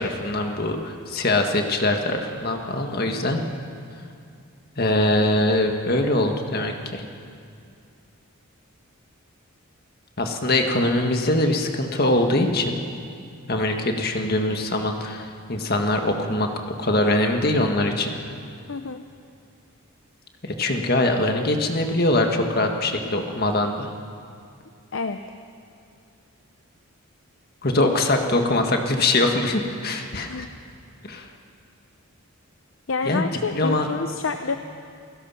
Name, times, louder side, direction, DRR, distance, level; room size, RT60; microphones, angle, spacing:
voice 1, 0.0-3.4 4.8-7.1 10.2-12.8 13.5-16.5 16.8-18.1 20.4-23.9 27.6-30.5 31.0-31.3 33.1-33.9, left 1 dB, 45° left, 3 dB, 1.8 m, -23 dB
voice 2, 18.7-19.0 24.9-25.2 30.3-30.5 32.9-34.6, left 4 dB, 60° left, 8 dB, 0.7 m, -28 dB
28.5 x 17.0 x 5.8 m, 2.4 s
head